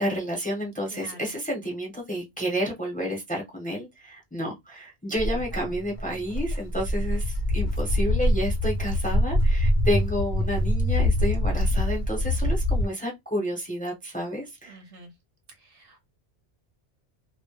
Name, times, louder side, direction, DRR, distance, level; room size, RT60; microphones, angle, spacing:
voice 1, 0.0-14.8, equal, 10° left, 0.7 m, -30 dB
Walk footsteps, 5.2-12.9, left 1 dB, 55° left, 0.6 m, -24 dB
voice 2, 14.7-15.1 15.6-16.0, right 3 dB, 65° right, 0.8 m, -47 dB
2.1 x 2.0 x 2.9 m
omnidirectional pair, 1.1 m